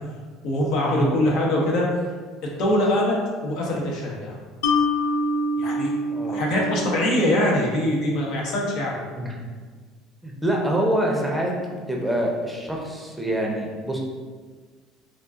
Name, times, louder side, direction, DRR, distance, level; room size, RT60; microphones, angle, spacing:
voice 1, 0.4-1.9 2.4-3.1 3.4-4.4 5.6-5.9 6.3-9.0, left 1 dB, 70° left, -2 dB, 0.7 m, -23 dB
Mallet percussion, 4.6-7.9, left 1 dB, 90° left, 0.3 m, -26 dB
voice 2, 6.1-6.4 9.2-9.3 10.2-11.5 11.9-14.0, right 1 dB, 5° right, -1 dB, 0.6 m, -25 dB
3.6 x 2.4 x 2.4 m, 1.5 s
supercardioid pair, 85°, 0 cm